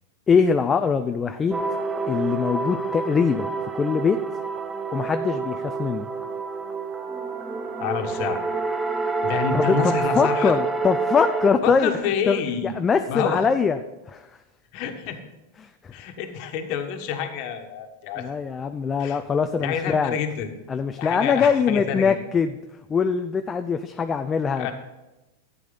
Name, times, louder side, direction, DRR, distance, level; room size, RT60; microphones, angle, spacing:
voice 1, 0.3-1.6 2.1-3.5 3.7-4.2 4.9-6.1 9.5-11.9 12.3-12.4 12.8-13.8 14.1-14.3 15.6-15.9 18.2-20.1 20.7-22.5 22.9-24.7, left 6 dB, 20° left, 8 dB, 0.5 m, -22 dB
sound 1, 1.5-11.5, right 4 dB, 15° right, 0.7 m, -28 dB
voice 2, 7.8-8.4 9.2-10.6 11.6-12.7 13.1-13.5 14.7-15.2 15.9-18.2 19.0-19.2 19.6-20.6 21.0-22.1 24.5-24.7, left 6 dB, 55° left, 6 dB, 1.4 m, -28 dB
11.5 x 8.4 x 4.0 m, 1.0 s
hypercardioid pair, 115°, 0 cm